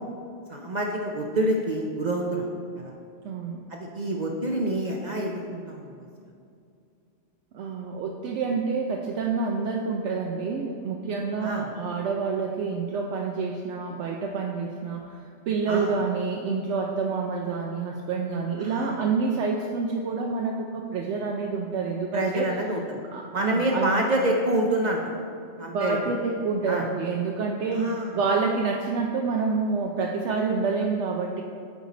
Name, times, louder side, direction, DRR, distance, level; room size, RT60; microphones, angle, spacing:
voice 1, 0.5-2.5 2.8-2.9 3.7-5.9 11.4-11.8 15.7-16.0 18.6-19.0 22.1-23.0 23.3-25.0 25.6-26.1 26.7-26.9 27.7-28.2, right 1 dB, 50° right, 0 dB, 0.5 m, -27 dB
voice 2, 3.2-3.6 7.5-15.1 15.5-22.5 23.1-24.0 25.7-31.4, right 4 dB, 75° right, 0 dB, 0.9 m, -28 dB
9.2 x 4.0 x 4.1 m, 2.4 s
omnidirectional pair, 1.2 m